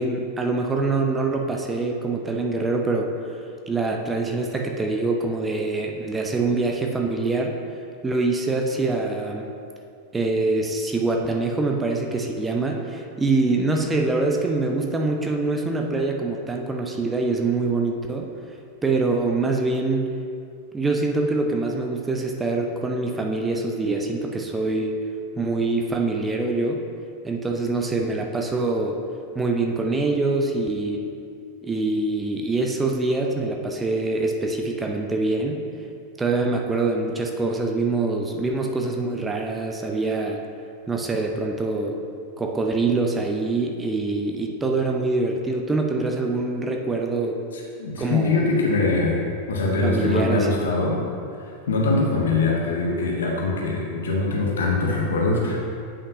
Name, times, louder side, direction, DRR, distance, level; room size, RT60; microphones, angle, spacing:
voice 1, 0.0-3.3 3.7-7.6 8.0-9.5 10.1-18.3 18.8-20.1 20.7-25.0 25.4-26.8 27.2-29.0 29.4-31.0 31.6-35.6 36.2-40.4 40.9-42.0 42.4-47.4 48.0-48.4 49.8-50.7, right 3 dB, 15° right, 1 dB, 0.5 m, -24 dB
voice 2, 47.8-49.2 49.5-51.0 51.7-55.6, left 3 dB, 65° left, -1 dB, 1.0 m, -22 dB
8.3 x 5.4 x 2.7 m, 2.4 s
figure-of-eight pair, 90°, 0 cm